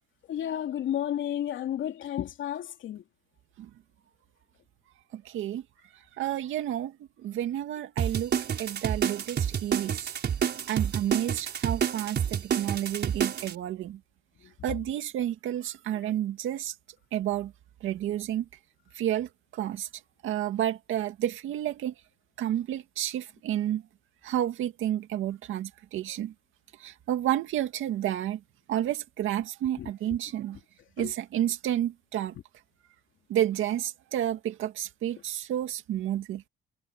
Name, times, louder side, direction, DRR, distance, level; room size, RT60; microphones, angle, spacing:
voice 1, 0.3-3.0 29.8-29.9 31.0-31.1, left 11 dB, 75° left, 2.9 m, -32 dB
voice 2, 5.1-5.6 6.2-7.0 7.2-10.1 10.7-14.0 14.6-16.7 17.1-17.5 17.8-18.4 18.9-19.9 20.2-21.9 22.4-23.8 24.2-26.3 26.8-28.4 28.7-30.6 31.0-32.3 33.3-36.4, right 11 dB, 80° right, 2.1 m, -30 dB
sound 1, 8.0-13.5, right 8 dB, 55° right, 4.8 m, -29 dB
cardioid pair, 90°, 20 cm